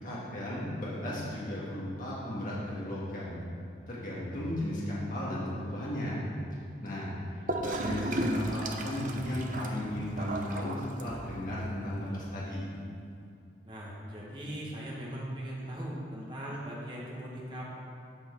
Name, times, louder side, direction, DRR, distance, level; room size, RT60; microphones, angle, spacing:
voice 1, 0.0-3.4 3.9-6.2 6.8-7.1 7.6-12.7, left 1 dB, 45° left, -7 dB, 1.6 m, -35 dB
Gurgling / Toilet flush, 7.5-11.5, right 1 dB, 45° right, 0.6 m, -35 dB
voice 2, 13.6-17.8, right 1 dB, 25° right, -5 dB, 1.5 m, -39 dB
8.1 x 6.3 x 4.6 m, 2.5 s
head